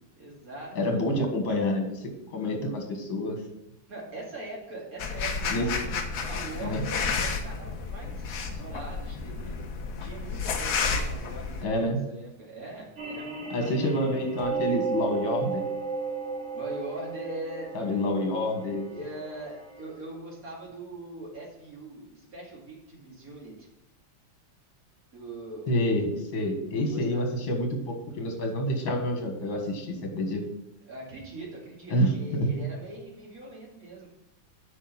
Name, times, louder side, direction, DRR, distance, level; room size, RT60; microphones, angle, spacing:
voice 1, 0.1-1.0 3.9-6.0 6.3-9.5 10.0-13.9 16.5-17.7 18.9-23.7 25.1-25.7 26.8-27.4 30.9-34.1, right 2 dB, 45° right, -3 dB, 2.7 m, -42 dB
voice 2, 0.8-3.4 5.5-5.7 6.6-6.8 11.6-12.0 13.5-15.6 17.7-18.9 25.7-30.4 31.9-32.7, left 1 dB, 80° left, 3 dB, 2.3 m, -28 dB
sound 1, 5.0-11.6, left 5 dB, 60° left, 1.3 m, -31 dB
sound 2, 13.0-19.9, right 5 dB, 80° right, 3.3 m, -34 dB
8.5 x 5.4 x 5.7 m, 0.86 s
omnidirectional pair, 2.1 m